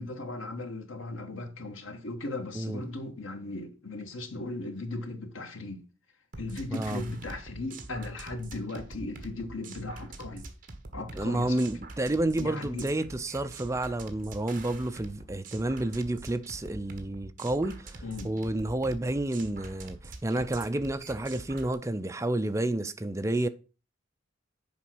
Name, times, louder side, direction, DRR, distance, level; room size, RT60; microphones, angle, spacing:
voice 1, 0.0-5.8 6.4-10.5 10.9-11.6 12.4-12.9 18.0-18.3, left 2 dB, 85° left, 1.3 m, -37 dB
sound 1, 6.3-21.7, right 2 dB, 45° right, 1.4 m, -44 dB
voice 2, 6.7-7.0 11.1-23.5, right 1 dB, 15° right, 0.4 m, -30 dB
7.2 x 4.8 x 6.1 m
head